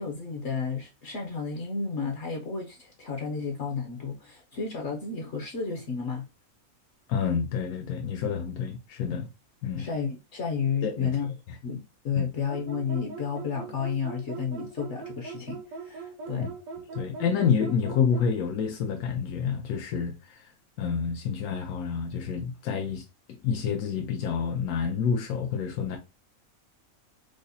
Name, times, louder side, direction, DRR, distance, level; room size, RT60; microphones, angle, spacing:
voice 1, 0.0-6.3 9.7-11.3 11.6-16.5, left 5 dB, 60° left, 0.9 m, -32 dB
voice 2, 7.1-9.3 9.6-9.9 10.8-11.2 11.5-11.6 12.1-12.3 16.4-16.5 16.9-20.4 20.8-23.0 23.3-26.0, left 6 dB, 90° left, 1.1 m, -28 dB
sound 1, 12.5-18.3, right 5 dB, 80° right, 1.0 m, -41 dB
4.8 x 2.0 x 2.6 m
omnidirectional pair, 1.5 m